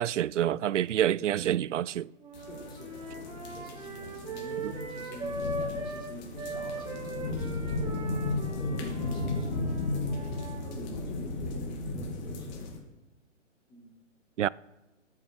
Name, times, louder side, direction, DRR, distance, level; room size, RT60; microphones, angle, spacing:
voice 1, 0.0-2.1 4.6-4.7 14.4-14.5, right 11 dB, 70° right, 0.5 m, -27 dB
sound 1, 2.2-6.1 6.3-10.7, right 2 dB, 10° right, 2.2 m, -40 dB
sound 2, 2.3-12.8, left 2 dB, 35° left, 2.3 m, -35 dB
voice 2, 2.4-3.1 3.5-10.2 10.6-12.7 13.7-13.9, equal, 10° left, 3.2 m, -46 dB
14.0 x 7.4 x 6.2 m
hypercardioid pair, 140°, 38 cm